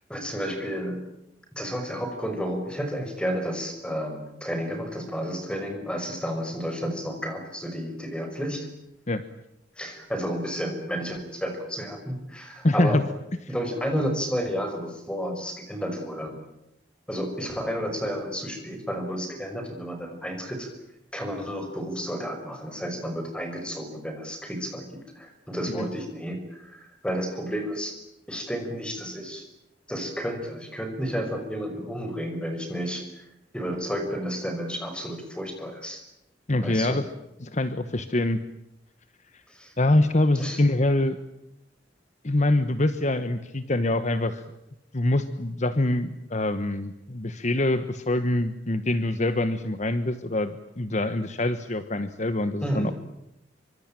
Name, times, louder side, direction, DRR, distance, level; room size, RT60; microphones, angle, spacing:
voice 1, 0.1-1.0 1.6-8.7 9.8-13.0 13.5-16.3 17.1-20.7 21.1-27.9 28.3-29.4 29.9-33.3 33.5-36.0 36.6-37.0 39.5-39.7 40.4-40.6 52.6-52.9, equal, 5° left, 5 dB, 5.8 m, -31 dB
voice 2, 12.6-13.0 13.4-13.5 25.7-25.9 36.5-37.0 37.4-38.4 39.8-41.2 42.2-44.4 44.9-52.9, left 1 dB, 40° left, 11 dB, 1.2 m, -24 dB
26.0 x 24.5 x 9.0 m, 0.83 s
head